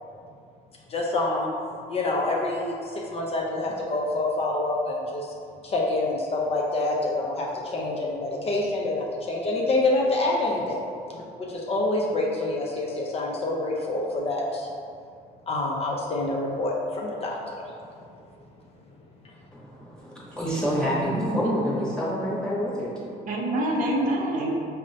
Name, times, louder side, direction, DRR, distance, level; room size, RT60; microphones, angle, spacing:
voice 1, 0.9-1.5 1.9-5.3 5.6-10.8 11.1-14.7 15.5-17.7, left 2 dB, 35° left, -2 dB, 0.5 m, -27 dB
voice 2, 19.5-23.2 24.0-24.1, equal, 5° left, -7 dB, 1.0 m, -28 dB
voice 3, 20.8-21.7 23.3-24.6, right 1 dB, 50° right, -2 dB, 0.6 m, -27 dB
4.8 x 2.0 x 2.7 m, 2.3 s
cardioid pair, 110°, 17 cm